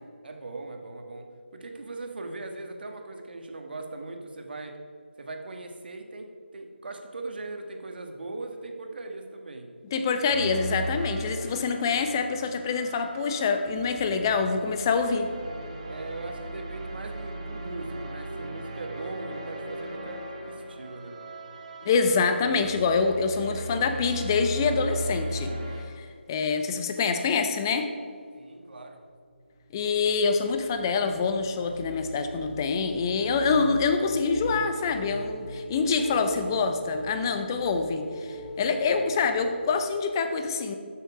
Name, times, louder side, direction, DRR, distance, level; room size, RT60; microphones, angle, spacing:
voice 1, 0.2-4.8 5.2-9.7 15.9-21.2 28.3-29.0, right 2 dB, 55° right, 4 dB, 1.4 m, -39 dB
voice 2, 9.9-15.3 21.8-25.5 26.0-27.9 29.7-40.7, left 5 dB, 20° left, 7 dB, 0.6 m, -26 dB
sound 1, 10.3-25.8, right 1 dB, 35° right, 1.6 m, -37 dB
sound 2, 29.2-39.8, equal, 5° right, 2.5 m, -41 dB
13.5 x 6.5 x 4.9 m, 2.2 s
figure-of-eight pair, 160°, 6 cm